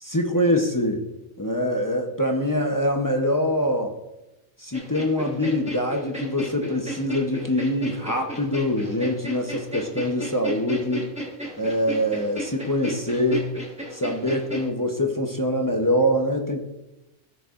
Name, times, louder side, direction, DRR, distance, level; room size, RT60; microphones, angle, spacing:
voice 1, 0.0-1.1 1.4-3.9 4.6-11.1 11.6-13.5 13.9-16.6, left 1 dB, 20° left, 2 dB, 0.6 m, -24 dB
sound 1, 4.7-14.7, right 1 dB, 5° right, 1.3 m, -34 dB
16.0 x 6.6 x 2.5 m, 0.98 s
omnidirectional pair, 1.3 m